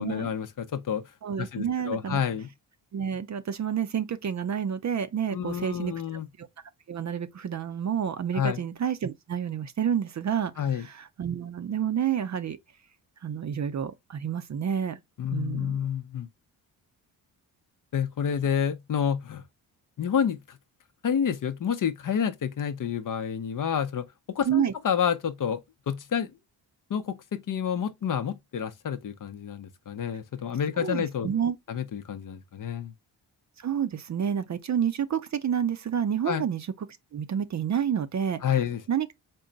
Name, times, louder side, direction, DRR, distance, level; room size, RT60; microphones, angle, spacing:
voice 1, 0.0-1.0 1.4-2.5 5.3-6.3 8.3-8.6 10.6-10.9 15.2-16.3 17.9-19.4 20.0-20.6 21.0-24.1 24.3-25.6 25.9-26.3 26.9-31.3 31.7-32.9 36.3-36.4 38.4-38.8, left 8 dB, 45° left, 0.6 m, -29 dB
voice 2, 1.2-2.2 2.9-5.9 6.4-6.5 6.9-12.6 13.2-15.0 15.3-15.8 24.4-24.7 30.8-31.6 33.6-36.9 37.1-38.4 38.9-39.1, right 8 dB, 40° right, 0.5 m, -29 dB
3.8 x 2.1 x 3.9 m
supercardioid pair, 55°, 45 cm